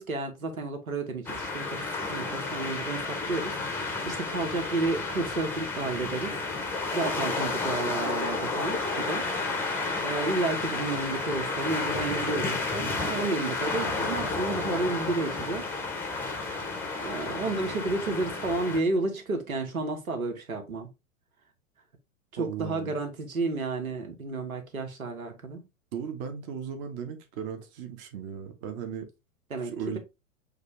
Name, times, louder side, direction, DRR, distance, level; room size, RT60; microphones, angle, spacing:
voice 1, 0.0-6.4 6.9-9.2 10.0-15.7 17.0-20.9 22.3-25.6 29.5-29.7, right 3 dB, 85° right, 1.4 m, -31 dB
sound 1, 1.3-18.8, left 3 dB, 5° left, 0.7 m, -31 dB
voice 2, 22.4-22.9 25.9-29.1 29.6-30.0, right 7 dB, 35° right, 0.9 m, -36 dB
6.5 x 2.3 x 3.1 m
figure-of-eight pair, 110°, 41 cm